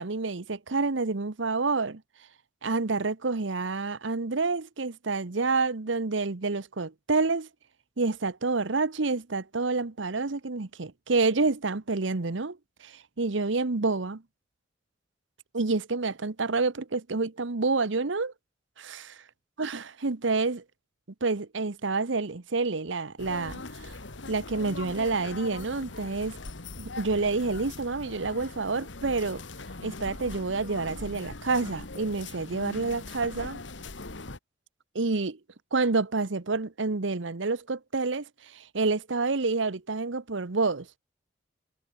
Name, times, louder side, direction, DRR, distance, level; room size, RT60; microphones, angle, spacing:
voice 1, 0.0-2.0 2.6-7.5 8.0-12.6 12.8-14.2 15.5-18.3 18.8-19.2 19.6-20.6 21.2-24.0 24.3-26.4 26.8-29.4 29.8-33.6 34.9-35.4 35.7-38.2 38.5-40.9, right 3 dB, 75° right, 1.0 m, -28 dB
sound 1, 23.2-34.4, left 3 dB, 70° left, 1.9 m, -41 dB
head